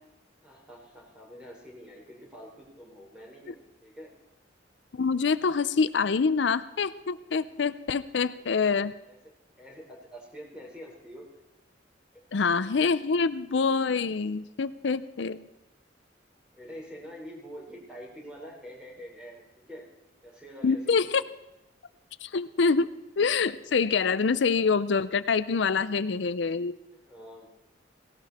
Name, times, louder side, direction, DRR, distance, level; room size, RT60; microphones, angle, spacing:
voice 1, 0.4-4.1 9.1-9.2 9.6-11.3 16.5-19.9 20.2-21.2 27.1-27.5, equal, 5° right, -3 dB, 4.3 m, -46 dB
voice 2, 4.9-8.9 12.3-15.5 20.6-21.2 22.2-22.9 23.2-26.8, left 5 dB, 75° left, 14 dB, 0.5 m, -26 dB
18.0 x 17.0 x 4.2 m, 0.97 s
head